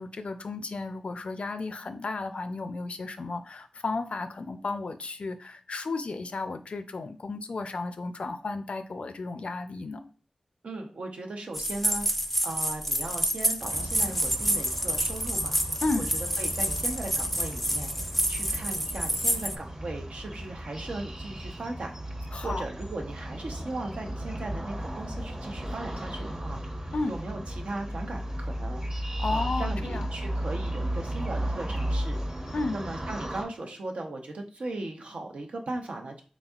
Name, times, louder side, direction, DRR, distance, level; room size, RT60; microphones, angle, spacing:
voice 1, 0.0-10.0 15.8-16.1 22.3-22.6 26.9-27.1 29.2-30.1 32.5-32.8, left 3 dB, 70° left, 9 dB, 0.4 m, -33 dB
voice 2, 10.6-12.1 12.4-16.0 16.4-28.9 29.3-32.2 32.7-36.2, right 2 dB, 85° right, 2 dB, 0.7 m, -38 dB
sound 1, 11.5-19.6, right 1 dB, 5° left, 0.4 m, -28 dB
sound 2, 13.6-33.4, right 1 dB, 40° right, 1.0 m, -35 dB
4.1 x 3.5 x 2.4 m, 0.40 s
wide cardioid pair, 70°, 2 cm